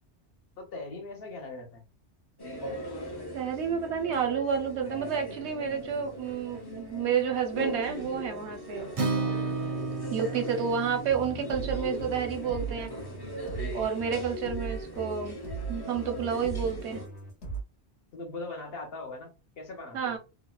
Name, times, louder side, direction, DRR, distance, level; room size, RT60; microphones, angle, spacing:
voice 1, 0.6-1.9 10.2-10.4 18.1-20.2, left 2 dB, 60° left, 2 dB, 1.0 m, -40 dB
sound 1, 2.4-17.1, equal, 35° left, 0.4 m, -40 dB
voice 2, 3.3-8.9 10.1-12.9 13.7-15.4 15.7-17.0 19.9-20.2, right 7 dB, 85° right, 5 dB, 1.0 m, -30 dB
Acoustic guitar, 8.9-13.2, right 3 dB, 45° right, 0.5 m, -34 dB
sound 2, 11.1-17.6, right 4 dB, 85° left, 1.1 m, -38 dB
2.6 x 2.1 x 2.2 m, 0.29 s
omnidirectional pair, 1.1 m